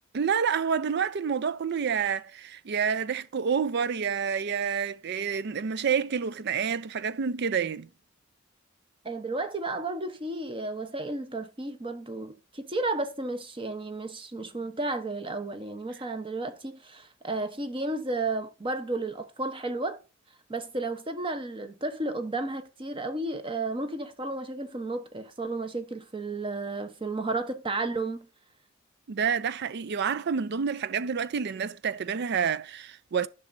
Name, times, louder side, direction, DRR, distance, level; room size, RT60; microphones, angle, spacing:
voice 1, 0.1-7.9 29.1-33.3, right 6 dB, 55° right, 0.4 m, -28 dB
voice 2, 9.0-20.0 20.5-28.3, right 2 dB, 25° right, 0.9 m, -33 dB
10.0 x 6.2 x 2.6 m
head